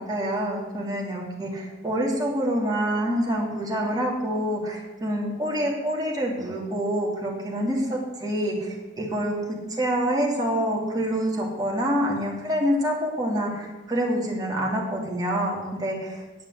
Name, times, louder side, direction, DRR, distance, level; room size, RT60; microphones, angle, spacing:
voice 1, 0.0-9.3 9.7-16.2, equal, 20° right, -3 dB, 2.8 m, -26 dB
9.5 x 7.2 x 8.0 m, 1.1 s
head